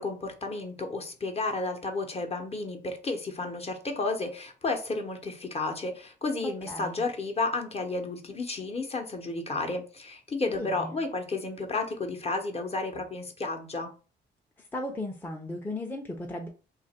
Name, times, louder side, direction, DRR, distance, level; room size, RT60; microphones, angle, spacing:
voice 1, 0.0-13.9, left 3 dB, 30° left, 3 dB, 0.9 m, -32 dB
voice 2, 6.4-7.0 10.5-11.0 14.6-16.5, left 1 dB, 10° left, 0 dB, 0.6 m, -36 dB
2.9 x 2.5 x 4.2 m, 0.35 s
cardioid pair, 90°, 20 cm